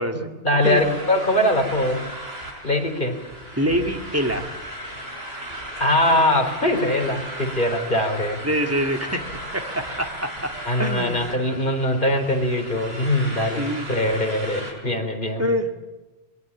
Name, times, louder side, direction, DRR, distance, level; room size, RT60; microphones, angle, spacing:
voice 1, 0.1-2.0 2.6-3.2 5.8-8.4 10.7-15.4, left 1 dB, 50° left, 3 dB, 4.3 m, -22 dB
sound 1, 0.6-14.7, equal, 65° right, 6.0 m, -36 dB
voice 2, 3.5-4.5 8.4-9.3 9.5-11.3 13.6-14.1 15.4-15.7, equal, 15° right, 4 dB, 2.3 m, -25 dB
24.0 x 21.5 x 8.6 m, 1.1 s
omnidirectional pair, 1.1 m